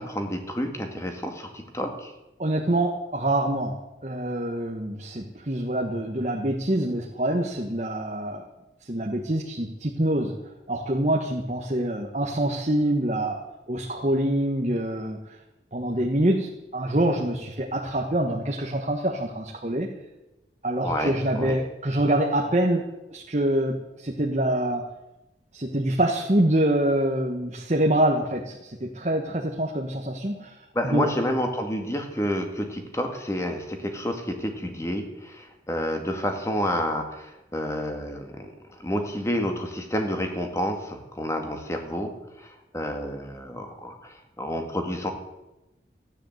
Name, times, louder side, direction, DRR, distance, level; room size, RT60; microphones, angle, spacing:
voice 1, 0.0-2.1 20.8-21.5 30.7-38.5 38.8-42.1 42.4-45.1, equal, 15° left, 4 dB, 2.0 m, -29 dB
voice 2, 2.4-8.5 8.9-10.4 10.7-15.2 15.7-19.9 20.6-24.8 25.5-30.5 30.8-31.1, right 1 dB, 40° right, 1 dB, 1.3 m, -25 dB
14.5 x 10.0 x 7.9 m, 0.97 s
head